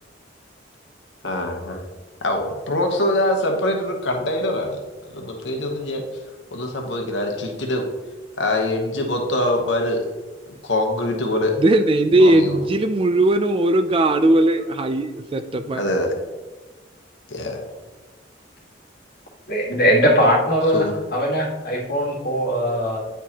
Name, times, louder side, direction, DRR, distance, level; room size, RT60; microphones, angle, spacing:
voice 1, 1.2-1.8 2.2-4.8 5.0-6.0 6.5-7.8 8.4-10.1 10.5-11.6 12.2-12.6 15.7-16.1 17.3-17.7 20.7-21.0, left 1 dB, 75° left, 2 dB, 1.0 m, -24 dB
voice 2, 11.6-15.8, right 1 dB, 30° right, 9 dB, 0.3 m, -18 dB
voice 3, 19.5-23.0, equal, 55° left, -3 dB, 1.6 m, -20 dB
9.1 x 4.6 x 2.9 m, 1.2 s
head